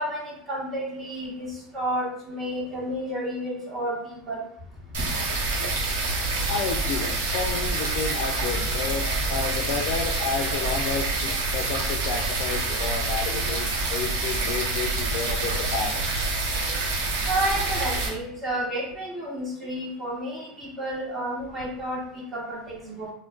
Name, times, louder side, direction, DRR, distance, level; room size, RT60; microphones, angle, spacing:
voice 1, 0.0-4.4 17.2-23.1, right 1 dB, 25° right, -7 dB, 1.1 m, -31 dB
sound 1, 4.9-18.1, right 2 dB, 90° right, 0.8 m, -27 dB
voice 2, 6.5-16.0, left 5 dB, 65° left, 1 dB, 0.3 m, -31 dB
2.3 x 2.1 x 3.6 m, 0.72 s
supercardioid pair, 120°, 0 cm